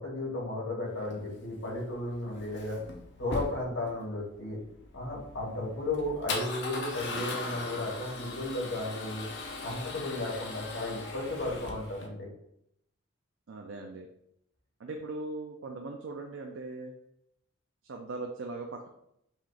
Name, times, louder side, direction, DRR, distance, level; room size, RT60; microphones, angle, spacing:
voice 1, 0.0-2.8 3.2-4.6 4.9-9.3 9.6-12.3, left 2 dB, 75° left, -3 dB, 1.7 m, -34 dB
Male speech man speaking / Car / Engine starting, 1.0-12.1, left 3 dB, 55° left, 0.7 m, -40 dB
voice 2, 13.5-14.1 14.8-16.9 17.9-18.9, right 3 dB, 65° right, 2 dB, 0.4 m, -39 dB
5.5 x 2.5 x 3.4 m, 0.77 s
head